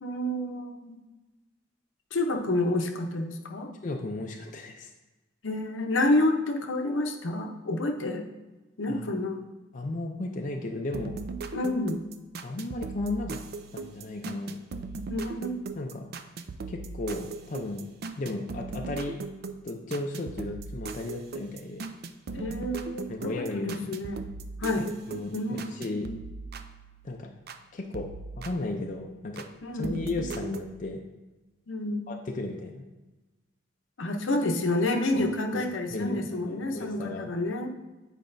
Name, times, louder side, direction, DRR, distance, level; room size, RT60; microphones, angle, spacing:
voice 1, 0.0-1.0 2.1-3.7 5.4-8.3 8.8-9.5 11.5-12.0 15.1-15.6 22.3-24.2 24.6-24.9 25.3-26.2 29.6-29.9 31.7-32.1 34.0-37.7, left 1 dB, 75° left, 4 dB, 0.7 m, -29 dB
voice 2, 3.8-4.9 8.9-9.1 9.7-11.2 12.4-13.4 13.7-14.6 15.8-16.1 16.7-17.9 18.2-19.2 19.6-21.9 23.1-23.9 24.8-26.1 27.0-27.3 27.7-28.1 28.4-29.5 29.7-31.0 32.1-32.8 35.1-37.3, left 2 dB, 40° left, 2 dB, 0.5 m, -34 dB
sound 1, 10.9-27.6 27.9-29.5 29.8-30.7, right 4 dB, 55° right, 0.4 m, -39 dB
8.6 x 4.9 x 2.6 m, 1.1 s
head